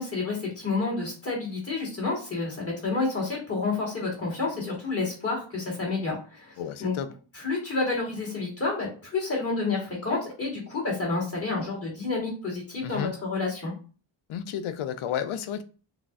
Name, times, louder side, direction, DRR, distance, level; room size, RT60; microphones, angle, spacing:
voice 1, 0.0-6.5 6.8-6.9 7.3-13.7, left 3 dB, 30° left, 1.5 m, -29 dB
voice 2, 6.6-7.1 12.8-13.1 14.3-15.6, left 9 dB, 80° left, 0.5 m, -32 dB
5.6 x 2.0 x 2.4 m
wide cardioid pair, 150°, 49 cm